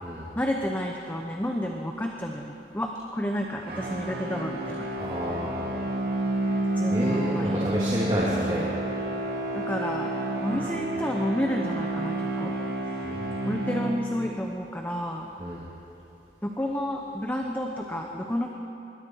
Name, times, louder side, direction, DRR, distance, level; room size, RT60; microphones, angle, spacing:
voice 1, 0.1-4.9 6.8-8.3 9.5-10.1 10.4-12.5 13.4-15.3 16.4-18.5, equal, 10° left, 1 dB, 1.0 m, -31 dB
sound 1, 3.6-14.4, right 1 dB, 60° right, 2.4 m, -30 dB
voice 2, 5.0-5.9 6.9-8.7 13.0-13.9 15.4-15.6, equal, 25° right, -7 dB, 3.0 m, -30 dB
25.5 x 21.0 x 4.8 m, 2.8 s
head